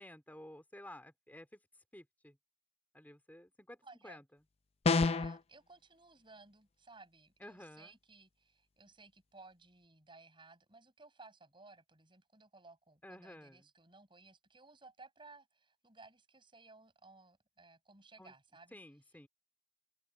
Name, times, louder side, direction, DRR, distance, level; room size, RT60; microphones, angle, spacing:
voice 1, 0.0-1.6 1.9-2.4 2.9-4.2 7.4-8.0 13.0-13.7 18.2-18.3 18.7-19.3, left 1 dB, 10° left, 2.6 m, -53 dB
voice 2, 3.8-4.2 5.0-18.8, right 3 dB, 30° right, 7.0 m, -58 dB
sound 1, 4.9-5.4, left 4 dB, 35° left, 0.4 m, -28 dB
head